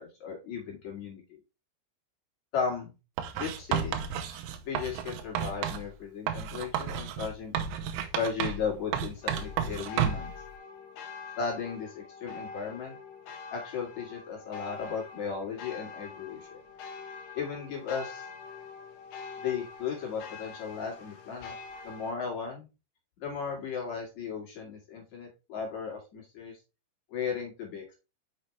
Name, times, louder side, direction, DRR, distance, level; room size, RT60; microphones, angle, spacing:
voice 1, 0.0-1.4 2.5-2.9 3.3-4.0 4.7-7.5 8.1-10.3 11.4-13.0 13.5-16.6 17.3-18.3 19.4-21.5 21.8-22.7 23.2-26.6 27.1-27.8, left 6 dB, 50° left, -1 dB, 2.5 m, -35 dB
Writing, 3.2-5.9 6.3-8.7 8.9-10.3, right 8 dB, 80° right, 3.0 m, -32 dB
sound 1, 9.2-22.1, left 5 dB, 65° left, 2.1 m, -45 dB
6.3 x 6.1 x 3.2 m, 0.28 s
omnidirectional pair, 5.4 m